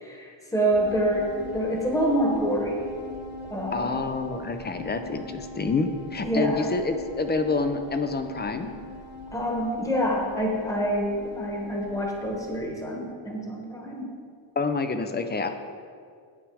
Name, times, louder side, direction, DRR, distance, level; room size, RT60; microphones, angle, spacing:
voice 1, 0.0-2.9 3.5-4.0 6.2-6.7 9.3-14.1, right 1 dB, 5° left, 0 dB, 1.4 m, -27 dB
sound 1, 0.7-12.6, left 2 dB, 55° left, 2.8 m, -41 dB
voice 2, 3.7-8.7 14.6-15.5, left 3 dB, 20° left, 8 dB, 0.5 m, -27 dB
9.5 x 8.2 x 4.8 m, 2.2 s
wide cardioid pair, 150°, 45 cm